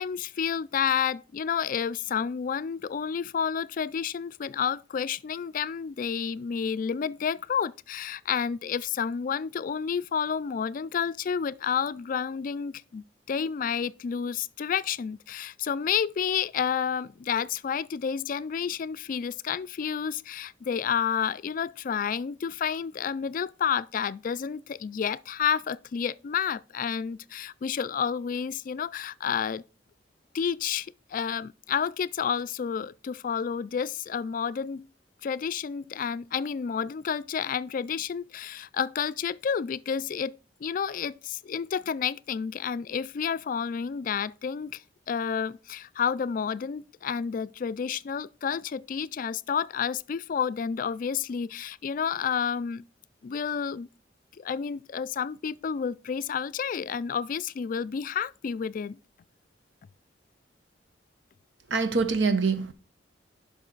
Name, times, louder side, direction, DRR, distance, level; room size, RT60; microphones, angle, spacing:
voice 1, 0.0-29.6 30.3-34.9 35.2-44.8 45.1-52.8 53.2-53.9 54.4-59.0, left 7 dB, 45° left, 0.3 m, -30 dB
voice 2, 61.7-62.7, right 4 dB, 80° right, 0.9 m, -24 dB
10.5 x 5.7 x 3.9 m
head